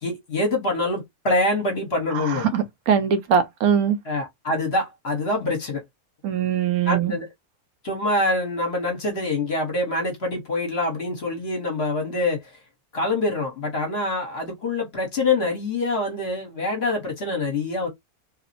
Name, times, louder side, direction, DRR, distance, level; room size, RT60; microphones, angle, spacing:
voice 1, 0.0-2.5 4.0-5.8 6.9-7.3 7.8-12.5 12.9-17.9, left 2 dB, 50° left, 1.1 m, -25 dB
voice 2, 2.5-4.0 6.2-7.1, right 7 dB, 75° right, 1.0 m, -21 dB
2.9 x 2.0 x 2.5 m
omnidirectional pair, 1.6 m